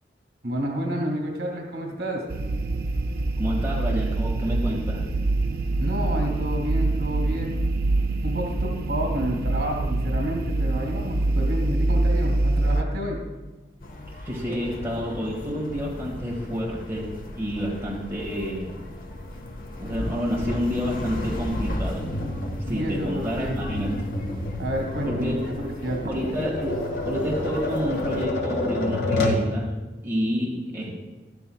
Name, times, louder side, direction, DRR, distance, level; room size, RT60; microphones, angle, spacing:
voice 1, 0.4-2.2 5.8-7.6 8.2-13.2 22.7-23.6 24.6-26.1, equal, 70° right, 0 dB, 2.2 m, -29 dB
sound 1, 2.3-12.8, right 2 dB, 55° right, 0.5 m, -25 dB
voice 2, 3.4-5.1 14.2-18.7 19.8-22.1 22.7-24.1 25.0-25.3 26.1-26.8 27.1-31.0, equal, 15° right, -4 dB, 1.7 m, -29 dB
sound 2, 13.8-28.2, left 1 dB, 50° left, 0.9 m, -36 dB
Tap, 22.0-29.5, left 1 dB, 70° left, 1.5 m, -29 dB
13.0 x 11.5 x 2.3 m, 1.2 s
head